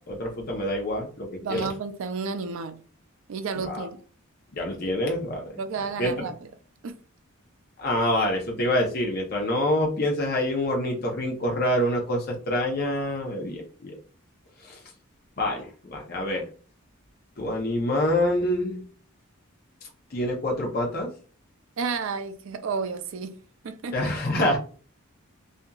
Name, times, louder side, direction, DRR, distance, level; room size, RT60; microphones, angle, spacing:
voice 1, 0.1-1.7 3.6-3.8 4.5-5.4 6.0-6.1 7.8-13.9 14.6-14.8 15.4-16.4 17.4-18.8 20.1-21.1 23.9-24.6, left 1 dB, 45° left, 0.6 m, -26 dB
voice 2, 1.4-2.8 3.3-4.0 5.6-6.5 6.8-7.0 21.8-23.4 23.6-24.0, right 5 dB, 70° right, 0.4 m, -31 dB
2.8 x 2.5 x 2.3 m
head